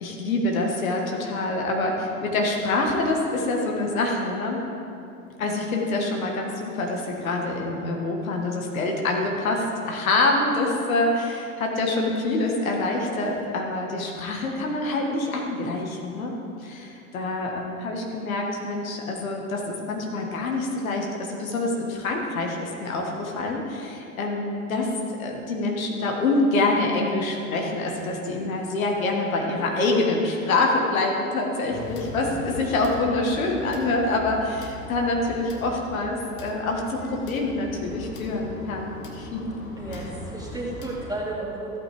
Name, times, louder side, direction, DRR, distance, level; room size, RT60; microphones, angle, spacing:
voice 1, 0.0-4.6 5.4-16.3 16.6-24.9 25.2-39.5, left 2 dB, 70° left, 0 dB, 1.6 m, -26 dB
sound 1, 31.7-41.2, left 1 dB, 45° left, 1.7 m, -40 dB
voice 2, 39.8-41.8, right 2 dB, 10° right, -4 dB, 2.4 m, -33 dB
15.0 x 8.3 x 3.5 m, 2.7 s
figure-of-eight pair, 75°, 43 cm